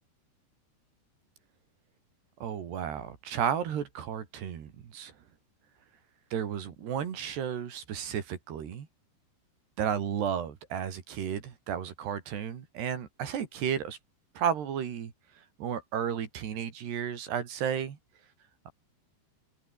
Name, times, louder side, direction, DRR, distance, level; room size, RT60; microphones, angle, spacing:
voice 1, 2.4-5.1 6.3-8.9 9.8-14.0 14.4-15.1 15.6-18.0, right 8 dB, 70° right, 4.8 m, -33 dB
open air
omnidirectional pair, 5.1 m